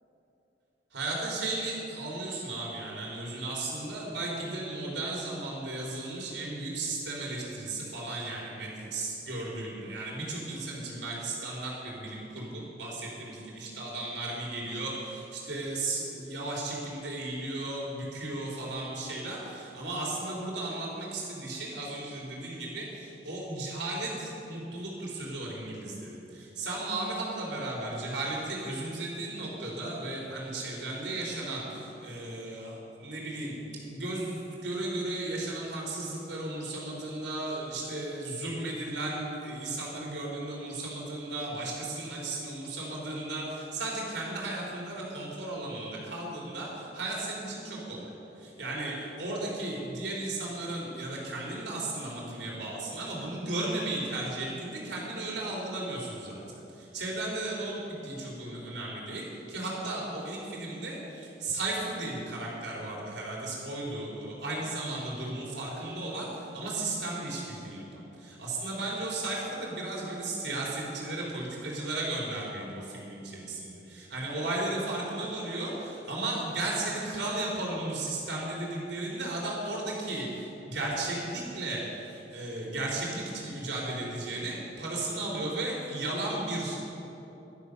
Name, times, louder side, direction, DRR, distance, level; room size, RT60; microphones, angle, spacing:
voice 1, 0.9-56.4 56.7-86.8, right 2 dB, 80° right, -4 dB, 3.9 m, -35 dB
12.0 x 11.5 x 6.8 m, 2.9 s
head